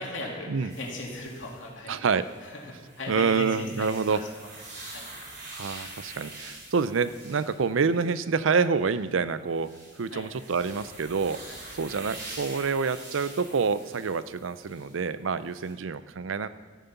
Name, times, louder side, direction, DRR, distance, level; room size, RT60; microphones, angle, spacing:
voice 1, 0.0-1.9 2.4-4.2 4.9-5.1 6.2-6.3 10.1-10.2 11.5-11.6, left 2 dB, 70° left, -2 dB, 2.9 m, -38 dB
sound 1, 0.7-1.7 2.1-8.3 8.8-8.9 9.5-15.0 15.5-15.7, right 2 dB, 60° right, 4.0 m, -45 dB
voice 2, 1.9-2.3 3.1-4.2 5.5-9.7 10.0-11.4 11.8-16.5, right 5 dB, 85° right, 14 dB, 0.5 m, -27 dB
13.5 x 9.3 x 5.8 m, 1.4 s
head